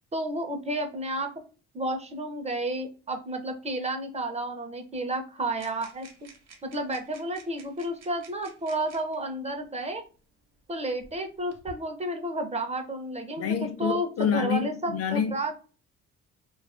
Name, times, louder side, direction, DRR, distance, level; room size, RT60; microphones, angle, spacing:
voice 1, 0.1-1.3 1.7-6.3 6.6-10.0 10.7-13.5 13.8-15.6, right 1 dB, 20° right, 0.5 m, -31 dB
sound 1, 5.6-9.2 10.2-10.3 11.0-11.8, right 3 dB, 60° right, 0.9 m, -51 dB
voice 2, 13.4-15.4, left 7 dB, 55° left, 0.4 m, -28 dB
2.3 x 2.2 x 2.4 m
cardioid pair, 90°, 30 cm